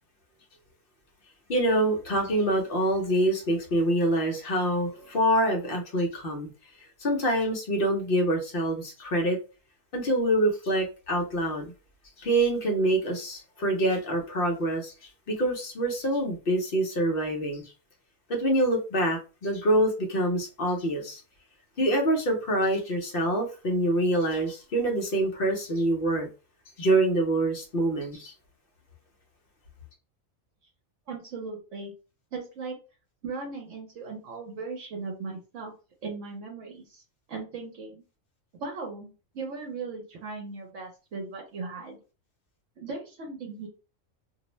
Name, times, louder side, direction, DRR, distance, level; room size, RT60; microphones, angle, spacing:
voice 1, 1.5-6.5 7.0-9.4 9.9-11.7 12.2-17.6 18.3-21.2 21.8-26.3 26.8-28.3, right 1 dB, 50° left, 2 dB, 0.8 m, -26 dB
voice 2, 31.1-31.9 32.3-32.8 33.2-35.7 36.0-37.0 37.3-38.0 38.5-42.0 42.8-43.7, right 4 dB, 70° right, 0 dB, 1.0 m, -38 dB
2.6 x 2.0 x 3.0 m, 0.33 s
omnidirectional pair, 1.4 m